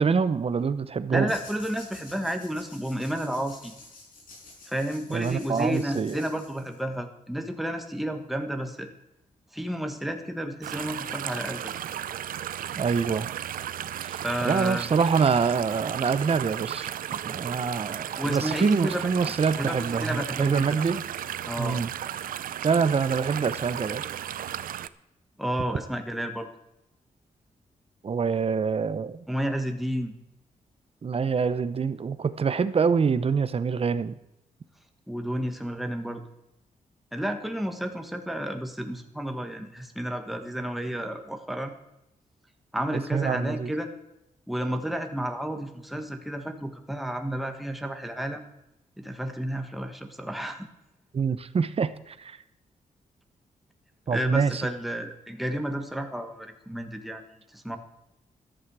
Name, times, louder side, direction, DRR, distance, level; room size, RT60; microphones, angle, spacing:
voice 1, 0.0-1.3 5.1-6.2 12.7-13.3 14.0-17.0 17.2-21.0 21.6-21.9 22.6-24.0 28.0-29.2 31.0-34.2 43.1-43.7 51.1-52.4 54.1-54.6, right 5 dB, 45° right, 14 dB, 0.9 m, -25 dB
voice 2, 1.1-3.7 4.7-8.9 9.5-11.7 14.2-14.9 18.2-19.1 19.6-20.8 21.4-21.8 25.4-26.5 29.3-30.1 35.1-36.2 37.1-41.7 42.7-43.9 44.5-48.4 49.0-50.7 54.1-57.2 57.5-57.8, equal, ahead, 5 dB, 1.5 m, -31 dB
sound 1, 1.3-7.0, left 3 dB, 80° left, 5.6 m, -49 dB
sound 2, 10.6-24.9, right 10 dB, 85° right, 0.5 m, -35 dB
13.5 x 11.5 x 4.8 m, 0.86 s
cardioid pair, 100°, 14 cm